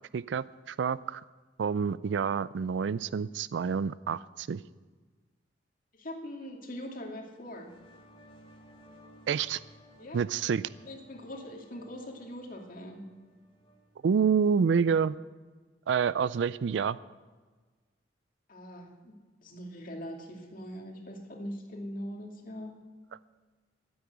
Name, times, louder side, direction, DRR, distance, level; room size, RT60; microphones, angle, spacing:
voice 1, 0.1-1.2 1.6-4.6 9.3-9.6 10.1-10.6 14.0-15.2 15.9-17.0, right 6 dB, 80° right, 18 dB, 0.4 m, -28 dB
voice 2, 5.9-7.7 10.0-10.2 10.8-13.0 18.5-19.1 19.4-22.8, equal, 50° left, 1 dB, 2.4 m, -42 dB
sound 1, 7.3-14.7, equal, 30° left, 3.3 m, -58 dB
14.0 x 8.8 x 8.0 m, 1.4 s
head